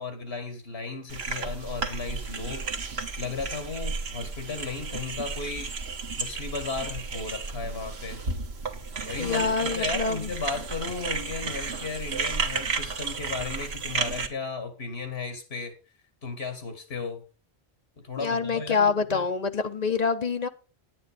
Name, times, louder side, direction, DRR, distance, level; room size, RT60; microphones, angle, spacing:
voice 1, 0.0-2.7 3.2-5.7 6.2-8.2 9.0-15.7 16.2-17.2 18.0-19.3, left 4 dB, 75° left, 2.3 m, -35 dB
sound 1, 1.1-14.3, right 4 dB, 70° right, 1.5 m, -33 dB
voice 2, 9.2-10.2 18.2-20.5, left 5 dB, 45° left, 0.9 m, -26 dB
9.7 x 8.7 x 5.0 m
omnidirectional pair, 1.1 m